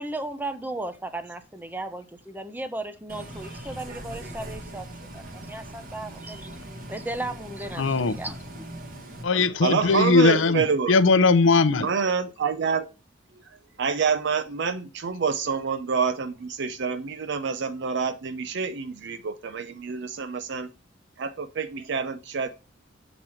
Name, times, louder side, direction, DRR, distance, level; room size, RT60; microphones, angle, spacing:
voice 1, 0.0-4.9 5.1-6.6 6.9-8.7, right 2 dB, 10° right, 0.6 m, -35 dB
Bus, 3.1-9.2, right 1 dB, 50° right, 1.4 m, -40 dB
voice 2, 7.8-8.1 9.2-11.9, left 3 dB, 75° left, 0.6 m, -20 dB
voice 3, 9.6-11.0 11.8-12.9 13.8-20.7 21.2-22.5, right 5 dB, 65° right, 0.5 m, -27 dB
7.5 x 4.0 x 4.3 m
head